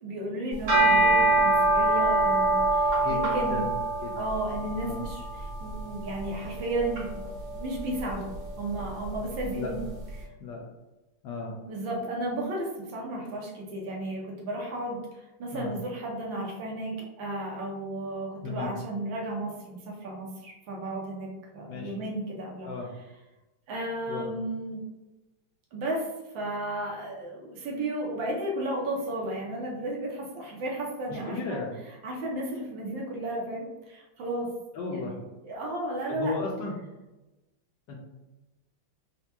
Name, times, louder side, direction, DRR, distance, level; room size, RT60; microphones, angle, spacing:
voice 1, 0.0-3.6 4.1-8.3 8.6-9.8 10.2-10.3 11.6-21.3 21.5-22.7 23.7-24.8 25.7-26.1 26.3-31.6 32.0-34.5 34.9-35.1 35.4-36.3, right 1 dB, 70° right, -2 dB, 1.4 m, -33 dB
sound 1, 0.5-9.9, right 2 dB, 50° right, 1.5 m, -26 dB
voice 2, 31.1-31.7 34.7-35.2 36.1-36.8 37.9-38.0, left 4 dB, 75° left, -1 dB, 1.1 m, -34 dB
4.4 x 2.1 x 2.8 m, 1.0 s
omnidirectional pair, 2.3 m